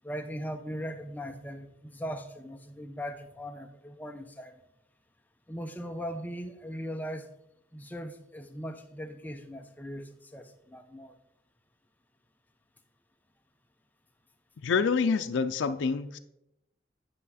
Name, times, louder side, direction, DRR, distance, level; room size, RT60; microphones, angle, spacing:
voice 1, 0.0-4.6 5.5-7.3 7.7-11.1, equal, 10° left, 0.6 m, -39 dB
voice 2, 14.6-16.2, left 5 dB, 90° left, 0.4 m, -27 dB
9.8 x 5.5 x 4.1 m
head